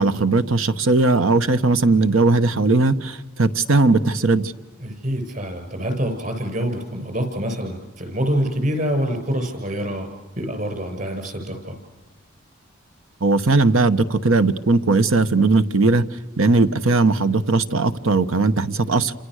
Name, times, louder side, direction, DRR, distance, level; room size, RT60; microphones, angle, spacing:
voice 1, 0.0-4.5 13.2-19.1, right 3 dB, 80° right, 11 dB, 1.2 m, -18 dB
voice 2, 4.8-10.1 10.4-11.8, equal, 45° right, 6 dB, 7.0 m, -26 dB
29.5 x 26.5 x 6.5 m, 1.1 s
head